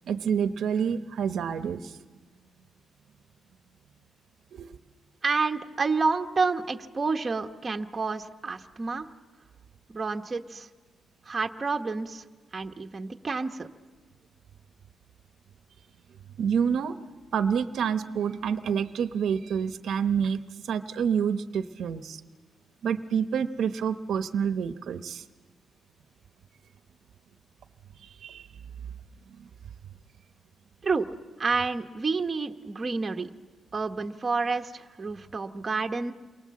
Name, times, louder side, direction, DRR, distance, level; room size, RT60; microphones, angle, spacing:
voice 1, 0.1-1.9 4.5-4.7 16.4-16.9 17.3-22.2 22.8-25.2 28.0-28.4 29.4-29.5, right 7 dB, 70° right, 10 dB, 0.8 m, -28 dB
voice 2, 5.2-9.1 9.9-10.7 11.3-12.2 12.5-13.7 30.8-31.1 31.4-33.3 33.7-36.1, right 4 dB, 25° right, 4 dB, 1.0 m, -29 dB
28.5 x 23.0 x 7.5 m, 1.3 s
wide cardioid pair, 145°, 0 cm